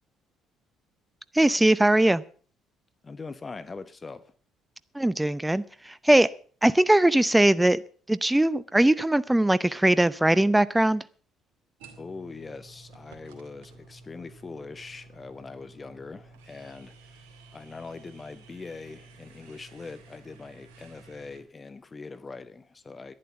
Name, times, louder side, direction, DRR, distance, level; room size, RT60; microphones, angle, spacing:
voice 1, 1.3-2.2 4.9-6.3 6.6-7.8 8.1-11.0, right 1 dB, 10° right, 16 dB, 0.7 m, -21 dB
voice 2, 3.0-4.3 12.0-17.2 17.5-23.1, left 4 dB, 30° left, 13 dB, 1.1 m, -42 dB
sound 1, 11.8-21.4, right 3 dB, 80° right, 2.4 m, -52 dB
11.0 x 11.0 x 7.1 m, 0.43 s
hypercardioid pair, 55°, 0 cm